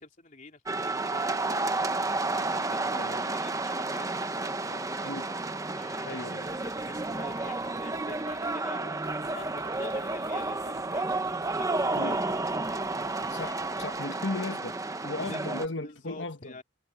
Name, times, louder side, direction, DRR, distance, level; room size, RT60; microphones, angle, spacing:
voice 1, 0.0-1.7 2.3-5.2 5.7-11.1 11.6-12.6 15.0-15.5 15.8-16.6, left 2 dB, 40° left, 3.3 m, -47 dB
sound 1, 0.7-15.7, right 2 dB, 15° right, 0.8 m, -31 dB
voice 2, 2.6-3.2 5.0-5.3 6.0-6.5 11.9-12.2 13.3-14.8 15.0-16.6, left 2 dB, 70° left, 1.5 m, -36 dB
sound 2, 6.5-8.6 9.0-14.0, right 3 dB, 55° right, 2.4 m, -54 dB
head